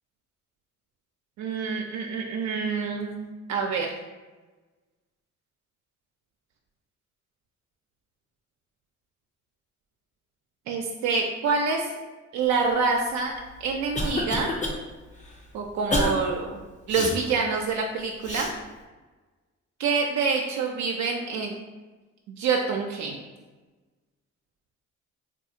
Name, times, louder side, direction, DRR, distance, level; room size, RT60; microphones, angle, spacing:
voice 1, 1.4-3.2 3.5-3.9 10.7-11.9 12.3-13.3 13.6-14.5 15.5-16.6 16.9-18.5 19.8-21.5 22.3-23.2, right 4 dB, 70° right, 1 dB, 0.4 m, -26 dB
Cough, 13.3-14.8 15.2-15.3 15.9-16.2 16.9-17.2 18.2-18.5, left 1 dB, 25° left, 0.6 m, -27 dB
3.7 x 2.4 x 2.7 m, 1.2 s
cardioid pair, 90°, 30 cm